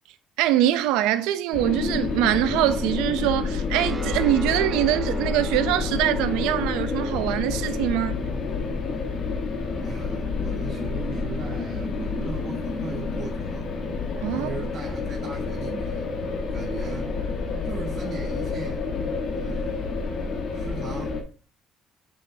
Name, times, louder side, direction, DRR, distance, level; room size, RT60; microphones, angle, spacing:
voice 1, 0.4-8.2 14.2-14.5, right 13 dB, 90° right, 0.5 m, -23 dB
sound 1, 1.5-21.2, left 4 dB, 55° left, 1.5 m, -29 dB
sound 2, 3.7-12.7, right 3 dB, 20° right, 0.9 m, -41 dB
voice 2, 9.8-13.7 14.3-16.1 16.5-17.2 17.6-18.9 19.3-19.9 20.5-21.2, right 5 dB, 45° right, 1.5 m, -38 dB
8.1 x 6.5 x 2.8 m
cardioid pair, 100°, 0 cm